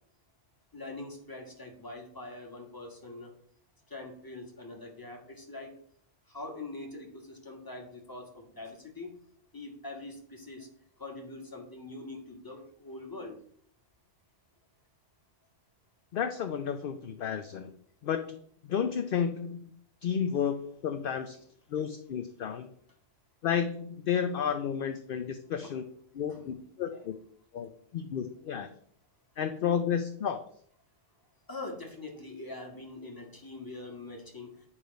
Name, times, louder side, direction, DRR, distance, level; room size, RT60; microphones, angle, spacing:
voice 1, 0.7-3.3 3.9-5.7 6.3-9.1 9.5-10.7 11.0-13.4 25.6-25.7 26.3-26.6 26.9-27.0 31.5-34.6, left 2 dB, 20° left, 1 dB, 1.4 m, -43 dB
voice 2, 16.1-17.7 18.0-18.2 18.6-19.7 20.0-21.4 21.7-22.7 23.4-25.8 26.2-27.1 27.5-28.7 29.4-30.4, left 8 dB, 60° left, 7 dB, 0.7 m, -31 dB
9.9 x 3.4 x 5.1 m, 0.62 s
omnidirectional pair, 1.2 m